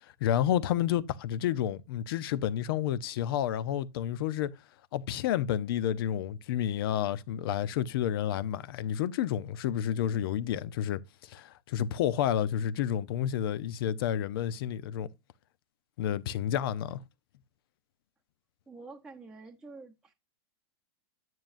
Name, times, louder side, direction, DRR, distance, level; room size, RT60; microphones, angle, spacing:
voice 1, 0.0-4.5 4.9-15.1 16.0-17.0, left 10 dB, 60° left, 0.7 m, -30 dB
voice 2, 18.7-20.1, right 3 dB, 5° right, 0.9 m, -48 dB
9.5 x 9.1 x 2.6 m
supercardioid pair, 160°, 14 cm